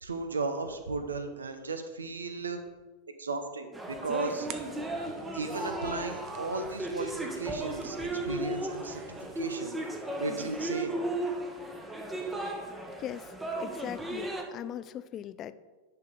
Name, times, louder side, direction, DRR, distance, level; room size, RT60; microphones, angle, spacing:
voice 1, 0.0-2.6 3.2-4.5 5.3-9.8 10.2-11.0, right 3 dB, 75° right, 8 dB, 0.8 m, -35 dB
sound 1, 3.7-14.4, right 1 dB, 10° right, 1.0 m, -35 dB
sound 2, 4.4-9.4, right 10 dB, 40° right, 0.6 m, -51 dB
voice 2, 13.0-15.5, left 10 dB, 30° left, 14 dB, 0.4 m, -40 dB
10.5 x 5.8 x 3.8 m, 1.3 s
figure-of-eight pair, 90°, 0 cm